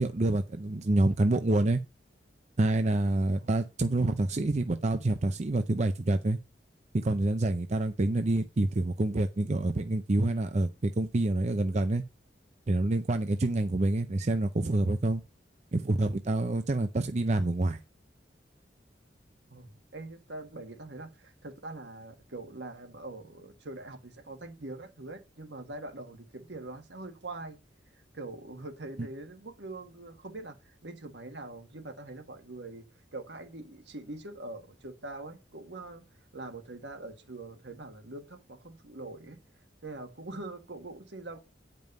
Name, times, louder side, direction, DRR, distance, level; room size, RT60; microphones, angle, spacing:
voice 1, 0.0-1.8 2.6-6.4 6.9-12.0 12.7-15.2 15.7-17.8, right 2 dB, 40° right, 0.6 m, -27 dB
voice 2, 3.2-3.6 19.5-27.6 28.1-32.8 33.1-36.0 36.3-39.4 39.8-41.4, right 2 dB, 75° right, 1.6 m, -43 dB
9.3 x 5.3 x 5.3 m
head